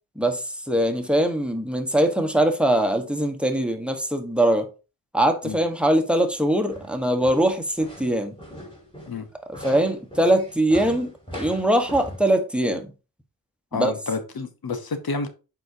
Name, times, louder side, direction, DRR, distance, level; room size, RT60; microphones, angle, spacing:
voice 1, 0.2-4.7 5.1-8.3 9.5-12.9 13.7-13.9, right 1 dB, 5° right, 1.2 m, -22 dB
sound 1, 6.7-12.2, equal, 15° left, 2.9 m, -40 dB
voice 2, 13.7-15.3, left 4 dB, 85° left, 1.0 m, -29 dB
7.6 x 4.8 x 2.8 m
cardioid pair, 50°, 36 cm